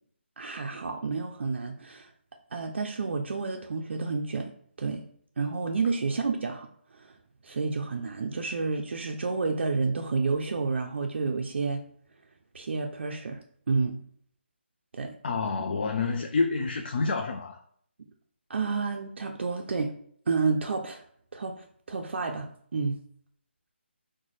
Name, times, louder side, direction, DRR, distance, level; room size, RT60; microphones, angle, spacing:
voice 1, 0.4-2.1 2.5-4.5 4.8-5.0 5.4-7.1 7.4-11.9 12.5-14.0 14.9-15.1 18.5-19.9 20.3-21.0 21.3-23.0, right 4 dB, 65° right, 3 dB, 0.4 m, -30 dB
voice 2, 15.2-17.6, left 4 dB, 50° left, 4 dB, 0.4 m, -28 dB
3.0 x 2.1 x 4.0 m, 0.62 s
figure-of-eight pair, 160°, 6 cm